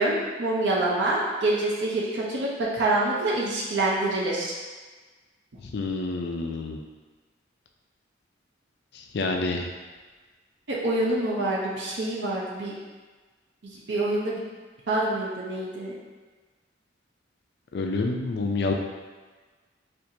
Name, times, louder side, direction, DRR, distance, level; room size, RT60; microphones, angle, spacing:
voice 1, 0.0-4.5 10.7-12.7 13.6-14.4 14.9-15.9, right 2 dB, 65° right, -4 dB, 0.6 m, -26 dB
voice 2, 5.6-6.8 8.9-9.7 17.7-18.7, left 3 dB, 55° left, 2 dB, 0.4 m, -28 dB
4.4 x 2.5 x 2.7 m, 1.4 s
head